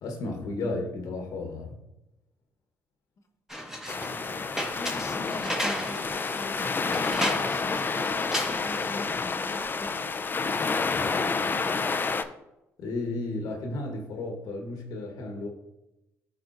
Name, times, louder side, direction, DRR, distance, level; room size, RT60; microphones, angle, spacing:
voice 1, 0.0-1.7 12.8-15.5, left 2 dB, 70° left, 2 dB, 1.2 m, -33 dB
sound 1, 3.5-9.0, equal, 5° right, 1.5 m, -35 dB
sound 2, 3.9-12.2, left 4 dB, 30° left, 0.6 m, -29 dB
voice 2, 4.1-10.2, left 2 dB, 50° left, 3 dB, 1.1 m, -43 dB
11.0 x 4.2 x 2.6 m, 0.93 s
hypercardioid pair, 55°, 7 cm